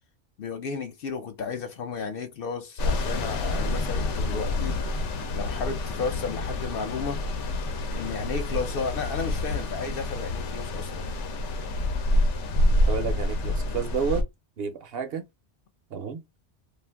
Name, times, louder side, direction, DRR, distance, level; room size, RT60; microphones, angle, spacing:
voice 1, 0.4-4.8 5.3-7.2 7.9-11.1, left 5 dB, 60° left, 0.7 m, -33 dB
sound 1, 2.8-14.2, left 1 dB, 80° left, 1.0 m, -27 dB
voice 2, 12.9-14.3 14.6-15.3 15.9-16.2, right 6 dB, 65° right, 0.7 m, -30 dB
2.5 x 2.4 x 3.3 m
omnidirectional pair, 1.2 m